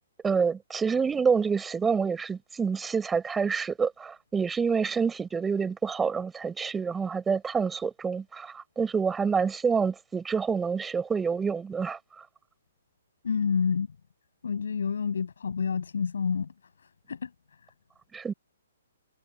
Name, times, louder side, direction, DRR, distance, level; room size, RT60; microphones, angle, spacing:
voice 1, 0.2-12.2 18.1-18.3, right 5 dB, 10° right, 5.1 m, -27 dB
voice 2, 13.2-13.9 14.4-16.5 16.8-17.3, left 6 dB, 75° left, 6.9 m, -28 dB
hypercardioid pair, 135°, 0 cm